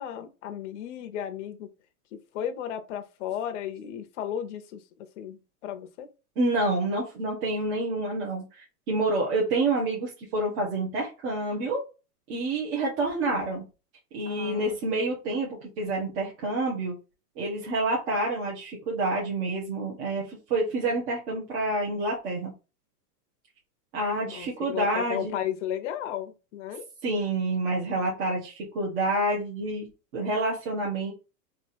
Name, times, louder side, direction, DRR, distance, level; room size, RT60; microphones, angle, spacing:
voice 1, 0.0-1.7 2.1-4.8 5.2-6.1 14.2-14.8 24.2-26.8, left 10 dB, 50° left, 0.7 m, -34 dB
voice 2, 6.4-11.8 12.3-13.6 14.1-16.9 17.4-22.5 23.9-25.3 27.0-29.9 30.1-31.1, right 2 dB, 40° right, 1.3 m, -28 dB
3.6 x 2.7 x 4.2 m
supercardioid pair, 160°, 48 cm